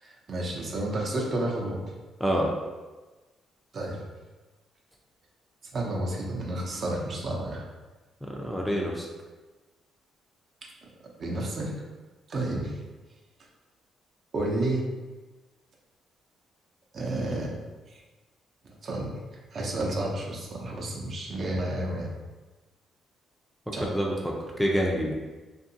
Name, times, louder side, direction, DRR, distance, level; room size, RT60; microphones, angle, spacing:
voice 1, 0.0-1.8 3.7-4.0 5.7-7.6 11.2-11.7 12.3-12.7 14.3-14.8 16.9-17.5 17.9-18.0 18.8-19.2 19.5-22.1 23.7-23.8, right 1 dB, 50° right, -2 dB, 0.6 m, -31 dB
voice 2, 8.3-9.1 23.8-24.1 24.6-25.1, equal, ahead, -2 dB, 0.4 m, -26 dB
2.7 x 2.5 x 2.6 m, 1.2 s
cardioid pair, 90°, 0 cm